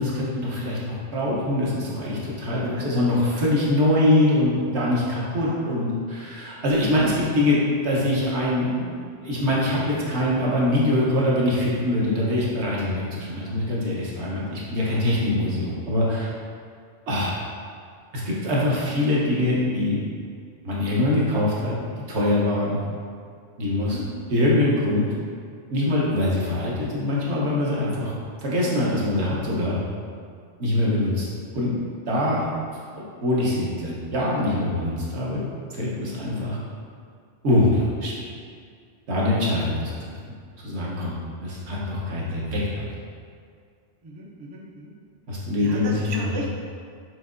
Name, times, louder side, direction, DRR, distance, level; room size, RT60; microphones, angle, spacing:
voice 1, 0.0-16.3 17.1-17.3 18.1-20.0 20.6-21.8 22.1-22.8 23.6-24.0 24.3-25.1 25.7-28.1 28.4-29.8 30.6-31.7 32.1-32.5 32.9-35.4 35.7-36.6 37.4-38.3 39.1-40.3 40.6-41.1 41.4-42.9 45.3-46.3, left 1 dB, 70° right, -6 dB, 1.2 m, -23 dB
voice 2, 5.5-5.8 23.8-24.0 31.0-31.1 44.0-44.9 45.6-46.5, right 1 dB, 45° right, -3 dB, 0.3 m, -35 dB
6.1 x 2.8 x 2.5 m, 2.2 s
omnidirectional pair, 1.2 m